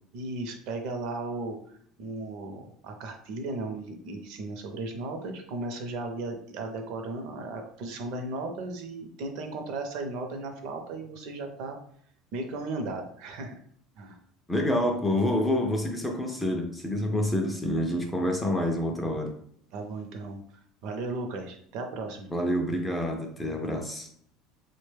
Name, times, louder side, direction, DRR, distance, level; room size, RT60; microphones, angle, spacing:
voice 1, 0.1-1.6 2.0-11.8 12.3-13.5 14.0-14.2 19.7-20.4 20.8-22.3, right 2 dB, 55° right, 4 dB, 0.6 m, -35 dB
voice 2, 14.5-19.3 22.3-24.1, left 1 dB, 5° left, 2 dB, 0.4 m, -27 dB
3.7 x 2.1 x 3.2 m, 0.64 s
cardioid pair, 170°, 0 cm